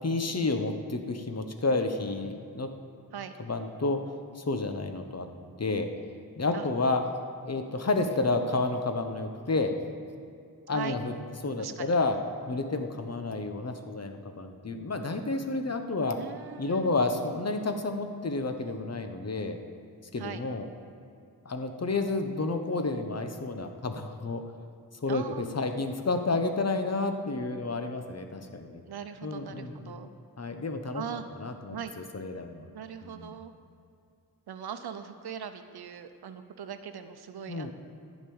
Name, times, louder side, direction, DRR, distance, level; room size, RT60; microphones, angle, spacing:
voice 1, 0.0-2.7 3.5-4.0 4.4-5.3 5.6-5.9 6.4-7.0 7.4-9.7 10.7-11.1 11.4-12.2 12.5-16.2 16.6-19.6 20.1-20.7 21.4-24.4 25.0-28.8 29.2-30.0 30.4-31.0 31.4-31.8 32.1-32.6 33.0-33.3 37.5-37.7, left 3 dB, 40° left, 6 dB, 1.1 m, -30 dB
voice 2, 11.6-12.0 16.2-17.0 20.2-20.4 25.1-25.5 28.9-30.1 30.9-31.2 31.7-31.9 32.7-33.5 34.5-37.7, right 8 dB, 80° right, 9 dB, 0.8 m, -40 dB
11.0 x 5.3 x 8.7 m, 2.4 s
cardioid pair, 45°, 38 cm